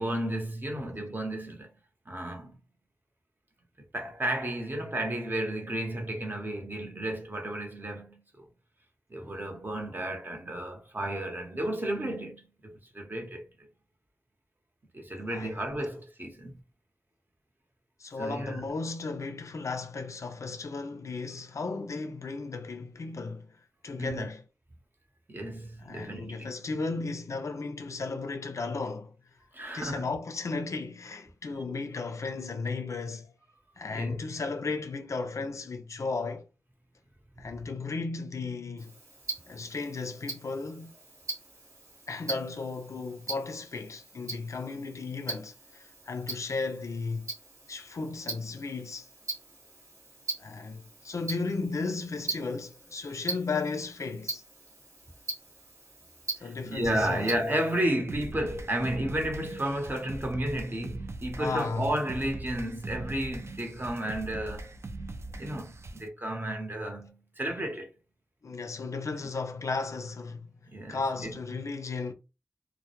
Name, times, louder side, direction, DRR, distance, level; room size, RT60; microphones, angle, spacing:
voice 1, 0.0-1.7 2.1-2.5 3.9-8.2 9.1-13.4 14.9-16.6 18.2-18.6 24.0-24.3 25.3-26.5 29.5-30.0 33.9-34.2 37.4-37.5 56.4-64.7 65.4-67.9 70.7-71.3, right 1 dB, 35° right, 0.8 m, -32 dB
voice 2, 15.3-15.6 18.0-23.6 23.8-24.4 25.8-29.2 29.7-33.3 33.8-36.5 37.4-39.0 39.5-40.9 42.1-47.3 47.7-49.1 50.4-54.4 56.4-57.3 61.4-61.9 68.4-70.5 70.9-72.1, left 4 dB, 65° left, 0.4 m, -35 dB
Tick-tock, 38.8-57.8, right 3 dB, 80° right, 1.1 m, -42 dB
sound 1, 58.1-66.1, right 2 dB, 55° right, 0.3 m, -41 dB
2.1 x 2.0 x 2.8 m
cardioid pair, 40°, 5 cm